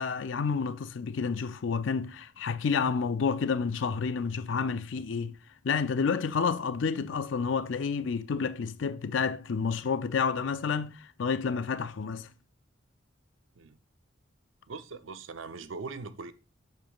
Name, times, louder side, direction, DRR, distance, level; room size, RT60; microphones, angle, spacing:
voice 1, 0.0-5.4 5.6-12.3, left 5 dB, 75° left, 0.4 m, -30 dB
voice 2, 14.7-16.3, right 4 dB, 85° right, 0.6 m, -41 dB
7.9 x 7.1 x 2.3 m
head